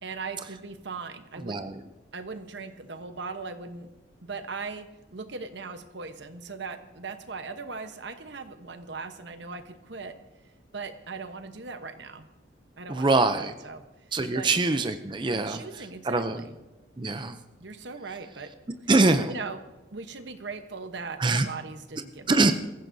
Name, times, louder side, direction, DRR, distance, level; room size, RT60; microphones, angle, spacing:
voice 1, 0.0-1.7 2.1-3.9 4.2-10.1 10.7-12.3 12.8-13.8 14.3-14.5 15.3-16.6 17.6-18.5 19.3-19.6 19.9-22.5, right 4 dB, 65° right, 8 dB, 1.0 m, -39 dB
voice 2, 1.4-1.7 12.9-13.5 14.1-15.6 16.0-16.4 17.0-17.4 18.9-19.3 21.2-21.5 22.3-22.5, right 3 dB, 25° right, 9 dB, 0.5 m, -23 dB
22.5 x 15.0 x 2.7 m, 1.1 s
head